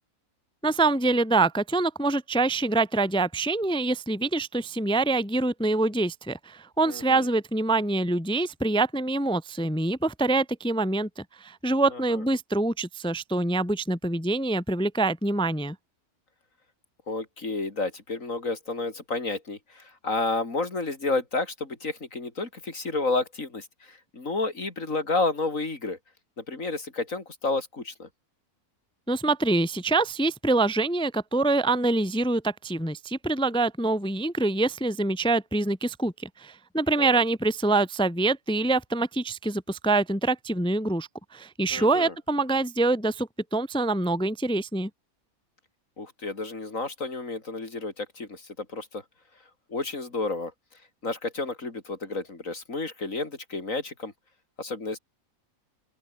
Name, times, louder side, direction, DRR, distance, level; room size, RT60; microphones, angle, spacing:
voice 1, 0.6-15.8 29.1-44.9, right 2 dB, 5° left, 0.4 m, -25 dB
voice 2, 6.8-7.3 11.9-12.2 17.1-26.0 26.4-28.1 37.0-37.2 41.7-42.1 46.0-49.0 49.7-50.5 51.0-54.1 54.6-55.0, left 3 dB, 60° left, 4.0 m, -31 dB
open air
omnidirectional pair, 1.6 m